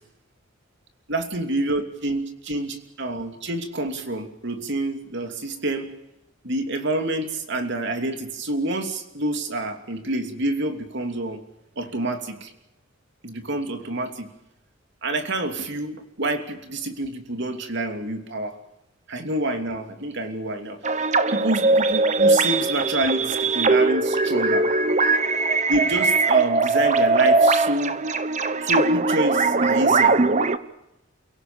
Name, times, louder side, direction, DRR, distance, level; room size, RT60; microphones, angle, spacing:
voice 1, 1.1-5.9 6.4-11.4 11.8-12.5 13.2-14.3 15.0-18.6 19.1-20.8 21.3-24.7 25.7-28.0 28.6-30.2, right 1 dB, 60° right, 6 dB, 3.0 m, -27 dB
sound 1, 20.8-30.6, right 3 dB, 35° right, 1.0 m, -20 dB
30.0 x 17.5 x 7.0 m, 0.90 s
head